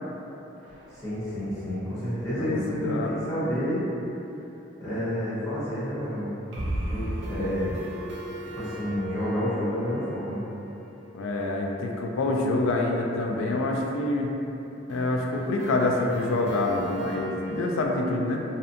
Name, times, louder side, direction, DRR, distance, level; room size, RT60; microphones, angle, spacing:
sound 1, 0.7-1.9 2.2-2.3 2.5-2.6 6.5-12.2 14.9-17.9, right 1 dB, 60° right, 0.4 m, -37 dB
voice 1, 0.9-3.8 4.8-6.4 6.8-7.8 8.6-10.4, equal, 15° left, -13 dB, 0.8 m, -29 dB
voice 2, 2.4-3.2 8.6-8.7 11.1-14.3 14.9-18.4, left 2 dB, 90° left, 0 dB, 0.3 m, -26 dB
2.6 x 2.1 x 2.6 m, 3.0 s
head